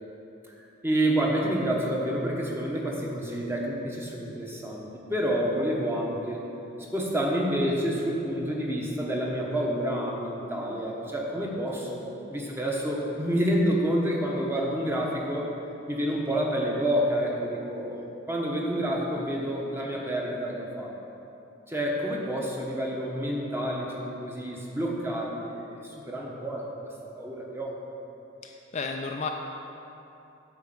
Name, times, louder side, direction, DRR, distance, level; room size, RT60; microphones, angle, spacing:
voice 1, 0.8-6.4 6.9-15.5 15.9-18.0 18.3-20.9 21.7-26.6 27.2-27.8, equal, 10° right, -2 dB, 1.1 m, -28 dB
voice 2, 28.4-29.3, left 4 dB, 35° left, 3 dB, 0.4 m, -33 dB
9.4 x 4.6 x 7.6 m, 3.0 s
head